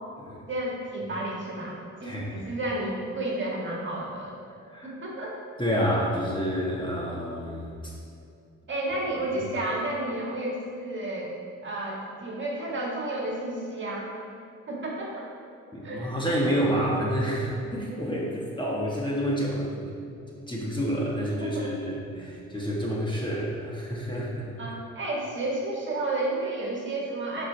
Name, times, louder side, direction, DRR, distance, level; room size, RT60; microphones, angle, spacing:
voice 1, 0.5-4.3 4.8-5.4 8.7-11.3 11.6-14.1 14.7-15.3 15.8-16.2 21.4-21.7 24.6-27.5, right 2 dB, 40° right, -3 dB, 1.8 m, -31 dB
voice 2, 2.0-2.5 4.7-4.9 5.6-7.9 15.7-20.2 20.5-24.5, equal, 15° left, -4 dB, 1.4 m, -29 dB
11.0 x 4.8 x 3.4 m, 2.5 s
cardioid pair, 90°, 30 cm